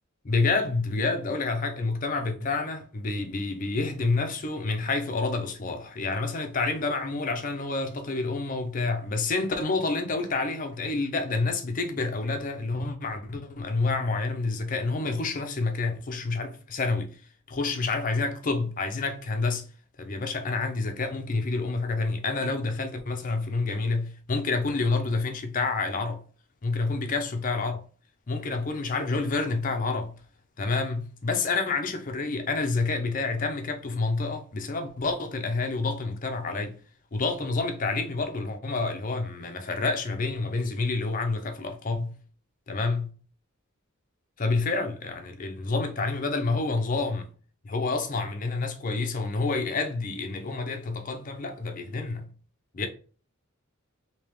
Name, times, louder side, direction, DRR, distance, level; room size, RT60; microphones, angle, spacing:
voice 1, 0.2-17.2 17.5-19.7 20.0-26.2 26.6-27.8 28.3-30.1 30.6-36.8 37.1-42.2 42.7-43.1 44.4-47.3 47.6-52.3 52.7-52.9, left 3 dB, 40° left, 0.5 m, -28 dB
3.3 x 2.9 x 3.1 m
head